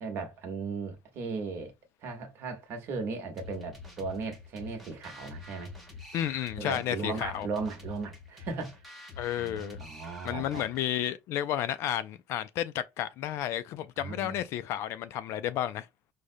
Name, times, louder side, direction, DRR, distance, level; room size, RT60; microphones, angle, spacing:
voice 1, 0.0-1.7 2.0-5.7 6.6-8.8 9.4-10.6 14.0-14.4, right 4 dB, 40° right, 1.0 m, -37 dB
sound 1, 3.4-11.0, left 4 dB, ahead, 0.9 m, -47 dB
voice 2, 6.1-7.5 9.2-9.8 10.2-15.9, left 11 dB, 50° left, 0.3 m, -32 dB
4.9 x 2.1 x 2.6 m
cardioid pair, 170°, 6 cm